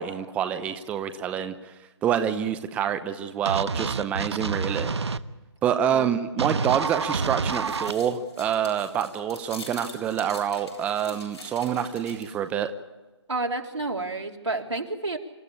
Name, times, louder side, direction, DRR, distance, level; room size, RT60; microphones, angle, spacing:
voice 1, 0.0-1.7 2.0-4.9 5.6-12.7, right 9 dB, 10° right, 9 dB, 0.8 m, -27 dB
sound 1, 3.4-5.2 6.4-7.9, right 4 dB, 70° right, 1.2 m, -28 dB
sound 2, 6.8-12.5, left 2 dB, 75° left, 7.9 m, -45 dB
voice 2, 13.3-15.2, right 2 dB, 85° right, 2 dB, 3.8 m, -30 dB
27.0 x 14.5 x 8.7 m, 1.2 s
figure-of-eight pair, 155°, 15 cm